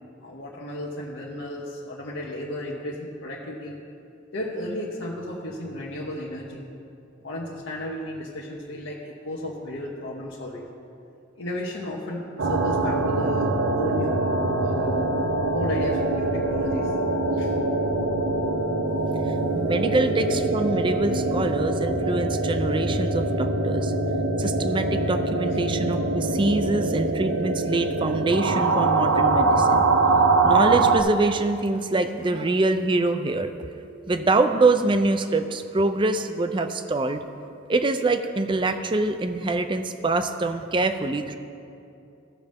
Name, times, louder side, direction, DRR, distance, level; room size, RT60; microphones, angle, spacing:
voice 1, 0.2-3.8 4.3-6.6 7.2-10.7 11.3-14.2 14.6-15.1 15.5-16.9 17.3-17.5 22.9-23.0, left 1 dB, 80° left, -6 dB, 1.1 m, -33 dB
sound 1, 12.4-31.0, right 3 dB, 85° right, 0.7 m, -23 dB
voice 2, 19.5-23.9 24.4-29.8 30.4-33.5 34.1-37.2 37.7-41.4, right 2 dB, 25° right, 9 dB, 0.4 m, -24 dB
16.0 x 6.5 x 3.5 m, 2.6 s
head